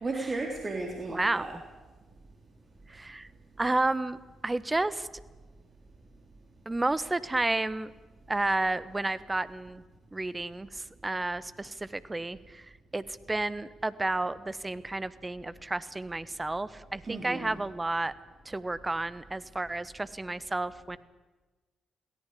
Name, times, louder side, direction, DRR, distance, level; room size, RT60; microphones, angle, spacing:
voice 1, 0.0-1.6 17.0-17.6, right 3 dB, 40° right, 2 dB, 3.7 m, -34 dB
voice 2, 1.1-1.4 2.9-3.3 3.6-4.2 4.4-5.1 6.6-7.9 8.3-9.8 10.1-12.6 12.9-18.1 18.4-21.0, right 2 dB, 20° right, 16 dB, 1.3 m, -31 dB
22.0 x 17.5 x 8.5 m, 1.2 s
hypercardioid pair, 40°, 0 cm